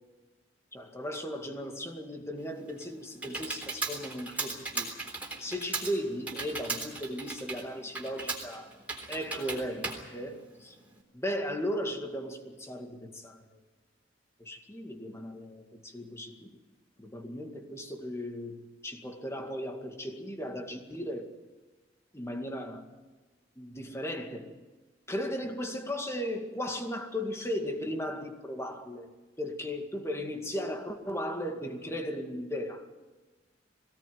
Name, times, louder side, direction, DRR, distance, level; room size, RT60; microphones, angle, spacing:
voice 1, 0.7-4.9 5.4-8.7 9.1-10.7 11.1-13.6 14.4-16.6 17.0-21.3 22.1-22.9 23.6-24.6 25.1-29.1 29.4-32.9, equal, 15° left, 2.1 m, -36 dB
Computer keyboard, 2.4-11.0, right 3 dB, 10° right, 3.6 m, -38 dB
22.0 x 17.5 x 9.6 m
head